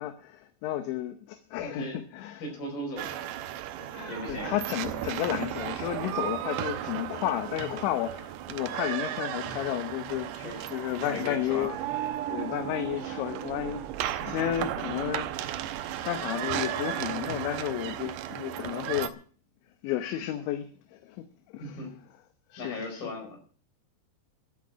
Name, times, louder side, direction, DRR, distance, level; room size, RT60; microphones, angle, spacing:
voice 1, 0.0-2.4 3.8-10.3 10.7-11.7 12.3-15.5 16.0-19.2 19.8-21.2 21.5-21.8 22.5-23.0, left 13 dB, 80° left, 3.2 m, -32 dB
voice 2, 1.6-2.0 2.4-3.3 4.1-4.5 10.3-10.7 11.0-11.8 21.6-21.9 22.6-23.4, left 1 dB, 50° left, 6.5 m, -37 dB
sound 1, 3.0-19.1, right 12 dB, 75° right, 2.6 m, -34 dB
12.0 x 8.6 x 8.8 m
omnidirectional pair, 5.3 m